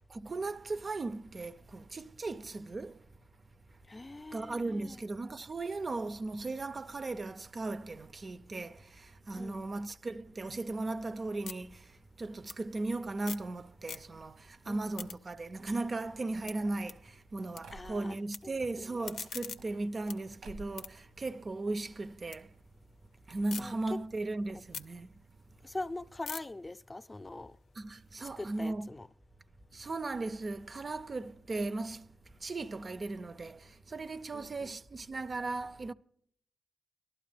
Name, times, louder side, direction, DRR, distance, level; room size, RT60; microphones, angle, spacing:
voice 1, 0.1-3.0 4.3-22.5 23.3-25.1 27.8-28.9 29.7-32.1 32.4-35.9, right 2 dB, 45° right, 0.5 m, -37 dB
voice 2, 3.9-5.0 9.4-9.6 14.7-15.1 17.7-18.2 18.4-18.9 23.6-23.7 25.6-27.5 28.4-29.1 34.3-34.7, left 2 dB, 30° left, 0.5 m, -43 dB
sound 1, 10.7-13.5 13.8-14.4 14.7-17.6 17.9-18.4 18.8-22.4 22.8-23.6 24.1-28.2, left 7 dB, 85° left, 0.6 m, -48 dB
sound 2, 15.6-18.5 19.3-20.1 20.4-20.9 21.2-22.0 22.2-22.3 22.5-22.6 23.3-23.4 23.7-23.9, right 3 dB, 85° right, 1.0 m, -53 dB
18.5 x 11.5 x 3.3 m
supercardioid pair, 45°, 0 cm